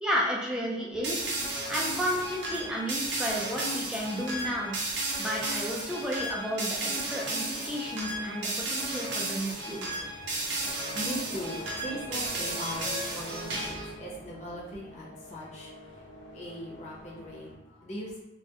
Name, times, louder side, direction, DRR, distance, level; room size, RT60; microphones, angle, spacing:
voice 1, 0.0-1.3 1.7-10.0, equal, 5° right, -4 dB, 0.4 m, -32 dB
sound 1, 0.9-17.5, left 1 dB, 85° left, 0.8 m, -49 dB
sound 2, 1.0-13.9, right 2 dB, 75° right, 0.6 m, -33 dB
voice 2, 10.7-16.0 16.3-18.2, equal, 40° left, -5 dB, 0.6 m, -40 dB
2.2 x 2.1 x 2.7 m, 0.98 s
head